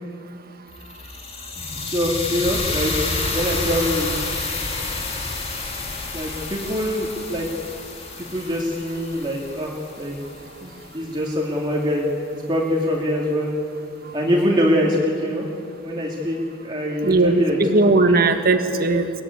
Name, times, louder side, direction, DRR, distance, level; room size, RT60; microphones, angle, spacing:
sound 1, 0.7-10.9, left 3 dB, 30° left, 2.9 m, -29 dB
voice 1, 1.8-4.1 6.1-7.5 8.2-10.2 10.6-13.5 14.1-15.5 15.8-17.6 18.1-18.2, equal, 25° right, -2 dB, 2.4 m, -24 dB
voice 2, 17.0-19.1, right 3 dB, 50° right, 6 dB, 1.7 m, -18 dB
23.5 x 17.5 x 9.9 m, 2.8 s
head